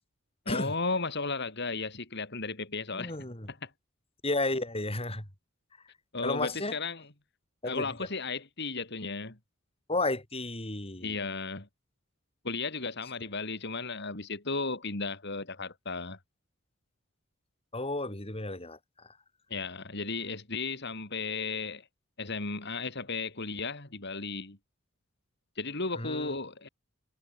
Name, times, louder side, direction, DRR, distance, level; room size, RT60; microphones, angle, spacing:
voice 1, 0.5-3.1 3.5-3.7 6.1-7.1 7.6-9.4 11.0-11.7 12.4-16.2 19.5-21.9 22.2-24.6 25.6-26.7, left 4 dB, 55° left, 3.7 m, -35 dB
voice 2, 2.9-3.5 4.2-5.3 6.2-6.7 7.6-7.9 9.9-11.2 17.7-18.8 25.9-26.4, left 2 dB, 30° left, 7.7 m, -32 dB
head